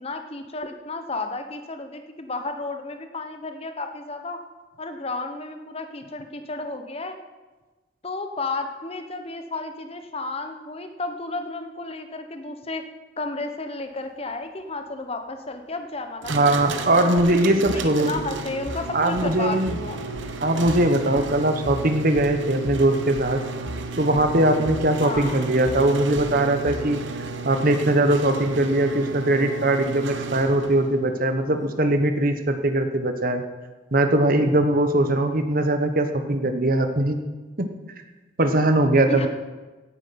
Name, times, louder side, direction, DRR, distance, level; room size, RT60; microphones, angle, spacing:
voice 1, 0.0-4.4 4.8-7.2 8.0-12.8 13.2-16.5 16.9-20.0 25.0-25.5 39.1-39.3, left 3 dB, 30° left, 6 dB, 1.1 m, -32 dB
sound 1, 16.2-30.9, right 3 dB, 70° right, 1.1 m, -34 dB
voice 2, 16.3-18.1 18.9-19.8 20.4-23.4 24.0-27.0 27.4-33.4 33.9-37.2 37.6-37.7 38.4-39.3, right 1 dB, 45° right, 7 dB, 1.2 m, -21 dB
sound 2, 17.2-27.0, equal, 10° right, 1.6 m, -37 dB
17.0 x 9.1 x 5.9 m, 1.2 s
head